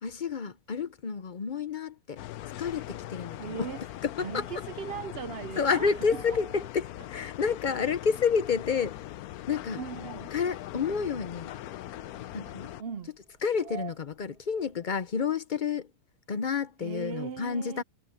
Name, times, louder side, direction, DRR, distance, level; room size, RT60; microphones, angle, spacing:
voice 1, 0.0-2.2 2.6-3.7 4.0-4.5 5.6-9.0 9.5-9.8 10.3-11.5 12.3-12.7 13.4-15.9 16.3-17.8, left 6 dB, 45° left, 0.6 m, -29 dB
sound 1, 2.2-12.8, left 14 dB, 75° left, 1.1 m, -41 dB
sound 2, 2.5-15.0, right 12 dB, 70° right, 6.7 m, -53 dB
voice 2, 3.4-3.8 4.2-6.0 6.3-6.4 9.8-10.3 12.8-13.1 16.8-17.8, right 7 dB, 55° right, 0.7 m, -38 dB
omnidirectional pair, 1.6 m